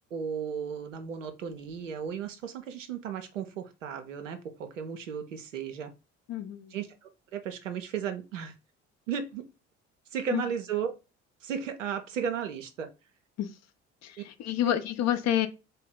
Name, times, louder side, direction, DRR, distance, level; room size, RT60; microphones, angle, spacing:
voice 1, 0.1-5.9 6.7-8.5 9.1-9.4 10.1-10.9 11.4-12.9, right 7 dB, 85° right, 0.6 m, -35 dB
voice 2, 6.3-6.7 10.3-10.4 13.4-13.5 14.0-15.5, left 11 dB, 45° left, 0.6 m, -28 dB
3.5 x 2.0 x 3.9 m
figure-of-eight pair, 55°, 37 cm